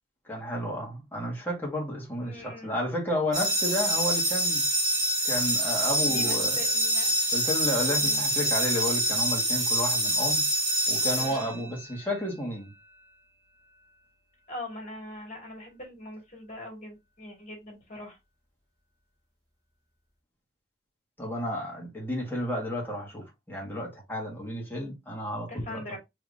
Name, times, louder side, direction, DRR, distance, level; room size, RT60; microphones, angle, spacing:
voice 1, 0.2-4.6 5.2-6.6 7.3-10.4 10.9-12.7 21.2-26.0, equal, 10° left, 1.5 m, -32 dB
voice 2, 2.2-2.7 6.0-7.2 7.9-8.2 11.1-11.6 14.5-18.2 25.5-26.0, left 1 dB, 45° left, 1.9 m, -41 dB
sound 1, 3.3-12.0, right 1 dB, 20° right, 1.2 m, -26 dB
3.3 x 3.1 x 2.6 m
head